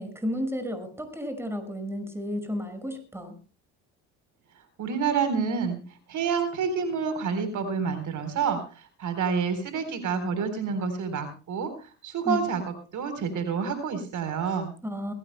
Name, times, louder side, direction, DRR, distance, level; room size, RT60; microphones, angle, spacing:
voice 1, 0.0-3.3 12.3-12.4 14.8-15.1, equal, 5° right, 7 dB, 5.6 m, -32 dB
voice 2, 4.8-14.7, right 6 dB, 55° right, 9 dB, 4.0 m, -28 dB
22.0 x 17.5 x 2.2 m, 0.36 s
supercardioid pair, 80°, 36 cm